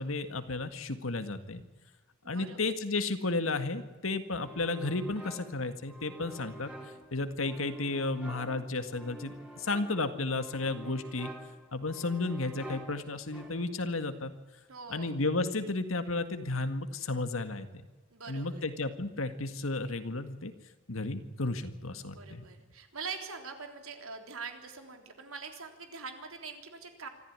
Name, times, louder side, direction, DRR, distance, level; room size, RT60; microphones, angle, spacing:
voice 1, 0.0-1.6 2.3-6.7 7.1-11.3 11.7-14.3 14.9-17.7 18.3-20.5 20.9-22.4, left 2 dB, 75° left, 9 dB, 1.9 m, -33 dB
voice 2, 2.2-2.8 14.7-15.2 18.1-18.6 21.9-27.1, right 5 dB, 85° right, 5 dB, 3.6 m, -43 dB
sound 1, 4.4-13.9, right 1 dB, 5° right, 3.6 m, -49 dB
25.0 x 14.5 x 9.7 m, 1.2 s
head